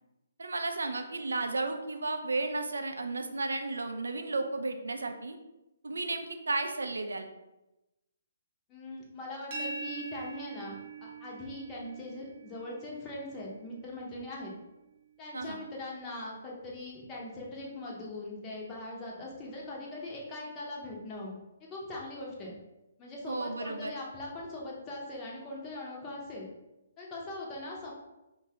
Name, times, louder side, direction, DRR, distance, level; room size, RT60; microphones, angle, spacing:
voice 1, 0.4-5.4 5.8-7.3 15.3-15.6 23.3-23.9, right 3 dB, 75° right, 6 dB, 0.4 m, -33 dB
voice 2, 8.7-14.5 15.2-22.5 23.0-26.5 27.0-27.9, left 2 dB, 20° left, -4 dB, 0.6 m, -41 dB
sound 1, 9.5-15.3, right 3 dB, 35° right, 0.6 m, -44 dB
3.1 x 2.2 x 2.7 m, 0.96 s
figure-of-eight pair, 135°, 0 cm